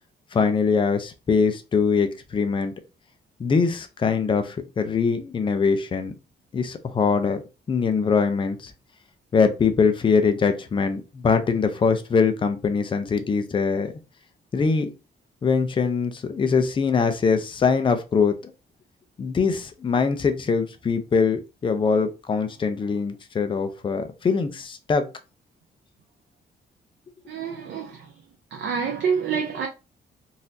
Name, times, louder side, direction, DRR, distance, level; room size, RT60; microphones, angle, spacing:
voice 1, 0.3-2.7 3.4-6.1 6.5-7.4 7.7-8.7 9.3-13.9 14.5-14.9 15.4-18.4 19.2-25.0, left 5 dB, 30° left, 0.5 m, -22 dB
voice 2, 27.3-28.0 28.5-29.7, right 6 dB, 85° right, 0.6 m, -27 dB
4.0 x 2.5 x 2.7 m
cardioid pair, 155°, 18 cm